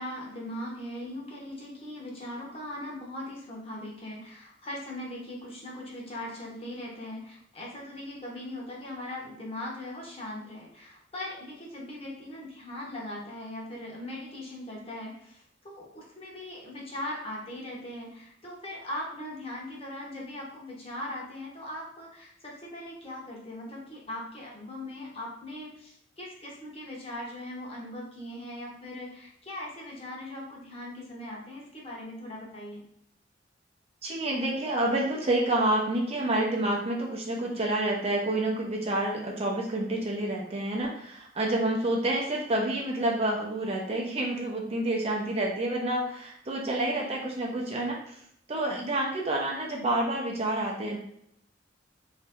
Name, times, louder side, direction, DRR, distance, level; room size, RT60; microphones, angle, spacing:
voice 1, 0.0-32.8 46.8-47.2, left 1 dB, 35° left, -3 dB, 1.0 m, -40 dB
voice 2, 34.0-48.1 48.5-51.0, right 1 dB, 35° right, -1 dB, 0.7 m, -28 dB
3.2 x 2.8 x 3.5 m, 0.70 s
head